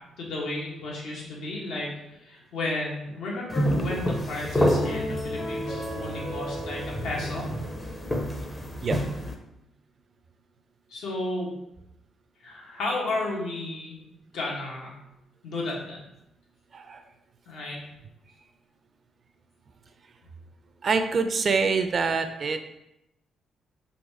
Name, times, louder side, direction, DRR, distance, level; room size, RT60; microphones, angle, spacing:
voice 1, 0.2-7.5 10.9-11.5 12.4-14.0 14.3-14.9 15.4-16.0 17.5-17.8, left 2 dB, 80° left, -3 dB, 1.4 m, -33 dB
sound 1, 3.5-9.3, equal, 15° left, 0.5 m, -29 dB
sound 2, 4.8-8.3, right 1 dB, 45° left, 1.2 m, -36 dB
voice 2, 20.8-22.6, right 4 dB, 40° right, 8 dB, 0.4 m, -25 dB
3.9 x 2.8 x 4.7 m, 0.86 s
cardioid pair, 140°, 0 cm